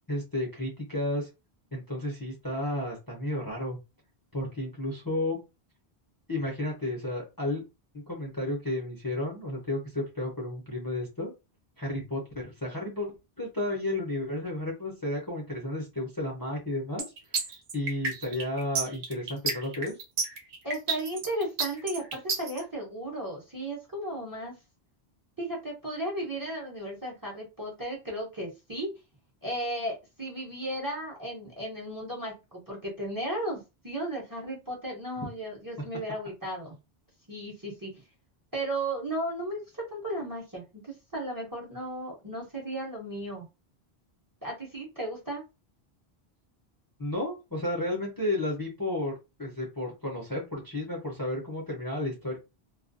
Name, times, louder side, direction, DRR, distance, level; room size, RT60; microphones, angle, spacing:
voice 1, 0.1-1.3 1.7-3.8 4.3-5.4 6.3-7.6 8.1-11.3 11.8-17.0 17.7-19.9 35.2-35.3 47.0-49.1 49.4-52.4, left 1 dB, 25° left, -3 dB, 0.6 m, -32 dB
sound 1, 17.0-22.6, right 4 dB, 90° right, 1.0 m, -30 dB
voice 2, 20.6-24.6 25.4-28.9 29.4-36.8 37.3-37.9 38.5-43.5 44.4-45.4, right 1 dB, 20° right, -2 dB, 0.8 m, -35 dB
2.3 x 2.2 x 2.5 m, 0.26 s
omnidirectional pair, 1.0 m